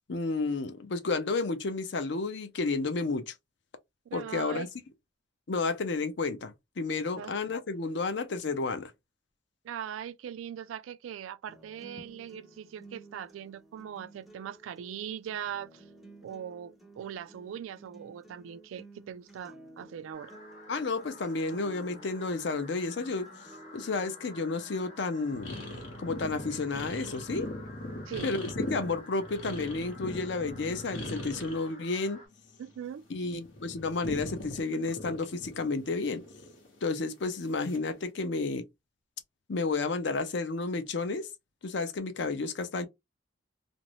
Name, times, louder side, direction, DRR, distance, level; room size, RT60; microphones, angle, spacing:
voice 1, 0.1-3.3 4.1-4.7 5.5-8.9 20.7-23.3 23.7-25.6 26.0-27.5 28.2-32.2 33.1-36.2 36.8-38.7 39.5-41.3 41.6-42.9, left 3 dB, 60° left, 0.5 m, -31 dB
voice 2, 4.1-4.7 7.1-7.3 9.6-15.8 16.2-20.3 28.1-28.3 32.6-33.0, right 9 dB, 85° right, 0.3 m, -40 dB
sound 1, 11.5-27.5, right 2 dB, ahead, 0.4 m, -54 dB
sound 2, 20.1-32.3, left 2 dB, 40° left, 0.9 m, -52 dB
sound 3, 25.3-31.7 32.0-33.0 33.3-36.8 37.6-37.9, left 1 dB, 90° left, 0.9 m, -40 dB
2.5 x 2.0 x 2.9 m
head